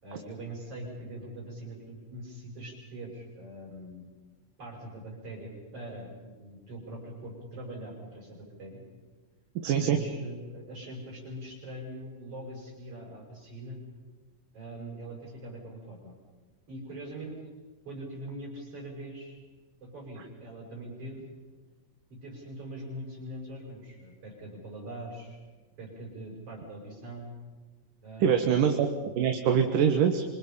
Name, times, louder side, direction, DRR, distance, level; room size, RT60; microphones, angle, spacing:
voice 1, 0.0-4.0 4.6-8.8 9.7-13.8 14.5-16.1 16.7-17.3 17.8-19.4 19.8-21.2 22.1-25.4 25.8-27.3 28.0-28.6, right 1 dB, 40° right, -2 dB, 5.9 m, -42 dB
voice 2, 9.6-10.0 28.2-28.9 29.2-30.2, right 8 dB, 75° right, 4 dB, 3.1 m, -24 dB
27.5 x 25.0 x 5.6 m, 1.3 s
omnidirectional pair, 3.9 m